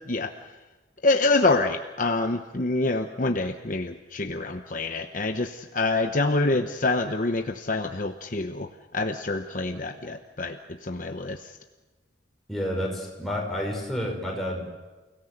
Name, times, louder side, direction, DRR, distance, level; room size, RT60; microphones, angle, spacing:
voice 1, 1.0-11.6, left 2 dB, 45° left, 6 dB, 0.9 m, -26 dB
voice 2, 12.5-14.7, equal, ahead, -2 dB, 5.6 m, -30 dB
29.5 x 17.5 x 8.0 m, 1.2 s
head